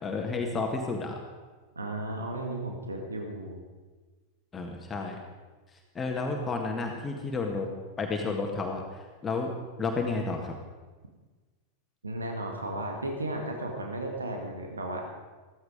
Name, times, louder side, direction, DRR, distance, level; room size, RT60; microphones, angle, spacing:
voice 1, 0.0-1.2 4.5-5.2 6.0-7.7 8.0-9.5 9.8-10.5, left 3 dB, 20° left, 2 dB, 1.8 m, -31 dB
voice 2, 1.8-3.6 12.0-15.0, right 1 dB, 75° right, 2 dB, 1.9 m, -34 dB
15.0 x 15.0 x 5.1 m, 1.3 s
figure-of-eight pair, 90°, 0 cm